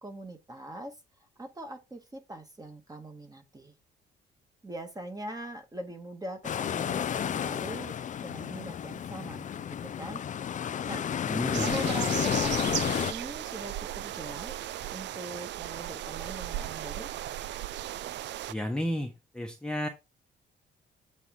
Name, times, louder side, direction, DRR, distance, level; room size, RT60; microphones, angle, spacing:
voice 1, 0.0-1.0 1.4-3.7 4.6-8.0 8.2-10.2 10.9-11.0 11.6-12.6 12.8-14.6 14.9-17.1, right 1 dB, 20° right, 1.6 m, -42 dB
sound 1, 6.4-13.1, left 9 dB, 40° left, 0.4 m, -31 dB
voice 2, 11.3-11.7 18.5-19.9, left 1 dB, 5° left, 1.1 m, -32 dB
sound 2, 11.5-18.5, right 12 dB, 65° right, 0.4 m, -36 dB
8.2 x 3.9 x 3.7 m
cardioid pair, 90°, 20 cm